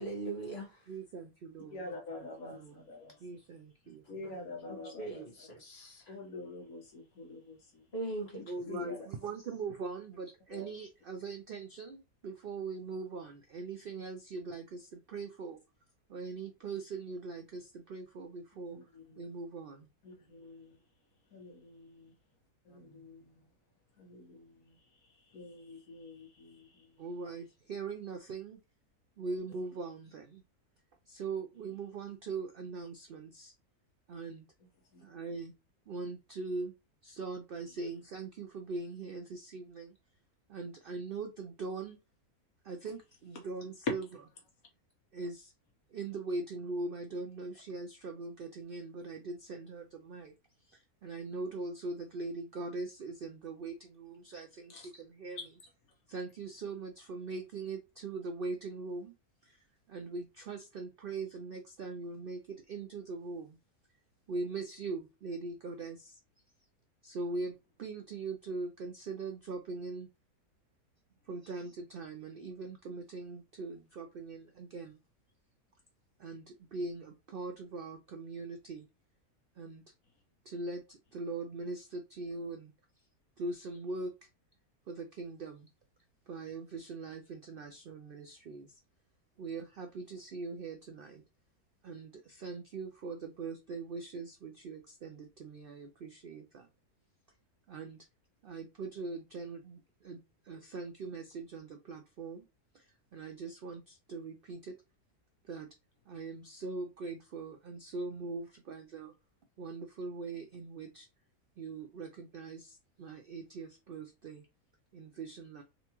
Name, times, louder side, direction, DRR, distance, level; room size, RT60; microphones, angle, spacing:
voice 1, 0.0-0.9 4.2-6.1 7.9-8.4, right 2 dB, 40° left, 2.1 m, -41 dB
voice 2, 0.9-2.9 3.2-4.0 8.5-15.6 16.1-18.8 19.2-19.9 27.0-28.6 29.2-30.4 31.1-33.5 34.1-34.4 35.0-35.5 35.9-36.7 37.0-40.0 40.5-42.0 42.6-44.0 45.1-45.5 45.9-50.3 50.7-55.5 56.1-59.1 59.4-59.6 59.9-63.6 64.3-66.2 67.0-67.5 67.8-70.1 71.3-75.0 76.2-78.9 79.6-79.8 80.5-82.7 83.4-84.1 84.9-85.7 86.3-88.8 89.4-91.2 91.8-96.7 97.7-98.1 98.4-100.2 100.4-102.5 102.7-104.7 105.4-105.7 106.1-109.1 109.6-111.1 111.6-114.5 114.9-115.6, right 3 dB, 85° right, 0.4 m, -41 dB
voice 3, 1.7-3.2 3.9-5.2 6.1-7.8 8.7-9.1 10.5-10.7 18.7-19.2 20.0-20.8 21.3-22.1 22.7-23.3 24.0-24.8 25.3-26.7 34.9-35.0 54.7-54.9 55.4-55.5, left 2 dB, 70° left, 1.5 m, -46 dB
4.0 x 3.4 x 2.9 m
omnidirectional pair, 1.6 m